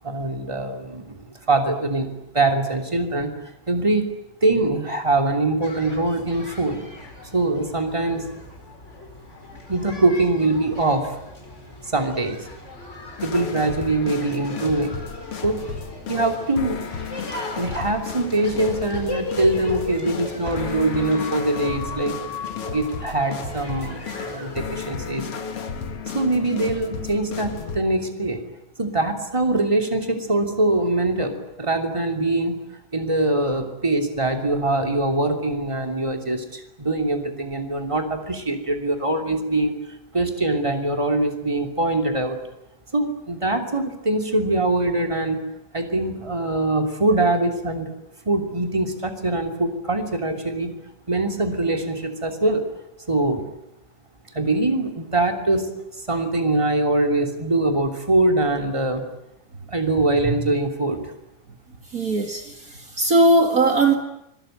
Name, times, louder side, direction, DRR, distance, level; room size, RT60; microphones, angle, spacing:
voice 1, 0.0-6.8 7.3-8.2 9.7-11.2 11.8-12.4 13.2-15.0 15.4-15.6 16.1-16.8 17.6-22.1 22.7-24.0 24.2-25.3 26.1-28.4 28.8-32.5 32.9-39.8 40.1-42.4 42.9-45.4 45.7-47.9 48.2-50.7 51.1-52.6 53.1-53.5 54.3-55.7 56.1-59.0 59.7-61.0, right 2 dB, 10° right, 4 dB, 2.1 m, -23 dB
sound 1, 5.6-24.9, left 1 dB, 15° left, 5.3 m, -38 dB
sound 2, 13.2-27.8, left 6 dB, 45° left, 2.2 m, -33 dB
voice 2, 61.9-63.9, right 2 dB, 70° right, 5 dB, 0.8 m, -19 dB
25.5 x 22.5 x 9.2 m, 0.83 s
omnidirectional pair, 5.0 m